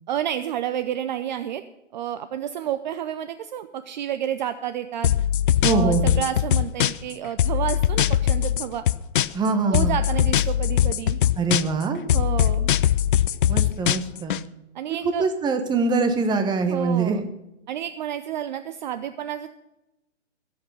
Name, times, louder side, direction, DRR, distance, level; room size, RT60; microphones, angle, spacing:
voice 1, 0.1-1.6 1.9-5.2 5.7-8.9 9.7-11.2 12.1-12.7 14.7-15.3 16.7-17.3 17.7-19.5, right 10 dB, 40° right, 11 dB, 0.6 m, -30 dB
sound 1, 5.0-7.1 7.4-9.5 9.7-11.8 12.1-14.4, left 11 dB, 45° left, 0.5 m, -21 dB
voice 2, 5.6-6.2 9.3-10.0 11.4-12.0 13.5-14.4 15.2-17.2, right 4 dB, 10° right, 7 dB, 1.1 m, -23 dB
16.0 x 8.0 x 6.7 m, 0.93 s
hypercardioid pair, 130°, 36 cm